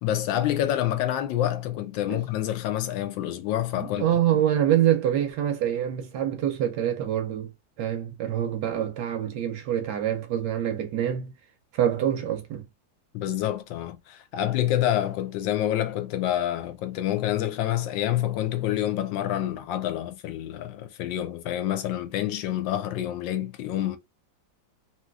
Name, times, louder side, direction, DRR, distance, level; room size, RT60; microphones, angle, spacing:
voice 1, 0.0-4.1 4.3-4.4 13.1-24.0, left 12 dB, 80° left, 1.3 m, -27 dB
voice 2, 3.8-7.5 7.8-11.3 11.7-12.7, right 10 dB, 70° right, 1.0 m, -25 dB
3.2 x 2.7 x 2.2 m
omnidirectional pair, 2.1 m